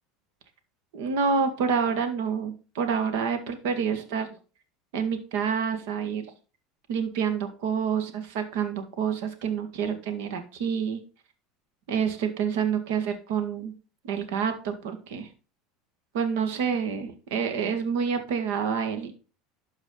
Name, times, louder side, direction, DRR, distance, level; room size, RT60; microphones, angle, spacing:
voice 1, 0.9-4.3 4.9-6.2 6.9-11.0 11.9-13.7 14.0-15.3 16.1-19.1, right 6 dB, 75° right, 8 dB, 1.9 m, -28 dB
12.0 x 4.9 x 3.9 m, 0.35 s
supercardioid pair, 120°, 0 cm